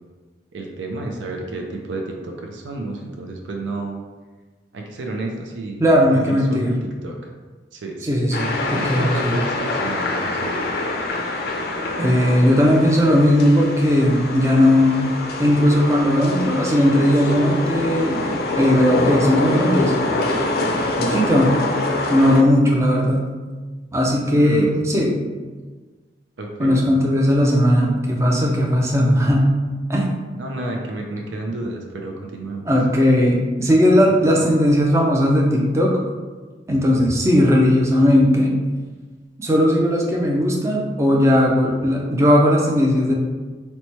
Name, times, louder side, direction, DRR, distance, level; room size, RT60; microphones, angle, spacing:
voice 1, 0.5-4.0 4.7-5.8 6.1-6.8 7.0-7.1 7.7-8.2 8.8-10.8 24.4-24.9 26.4-26.8 30.3-32.6, right 2 dB, 85° right, 1 dB, 0.4 m, -30 dB
voice 2, 5.8-6.7 8.0-9.3 12.0-18.3 18.6-19.9 21.0-21.5 22.1-23.3 23.9-25.2 26.6-29.5 29.9-30.1 32.6-36.0 36.7-38.5 39.4-43.1, equal, 15° right, -2 dB, 0.4 m, -17 dB
sound 1, 8.3-22.4, left 2 dB, 55° left, 0.4 m, -25 dB
3.0 x 2.2 x 4.1 m, 1.3 s
head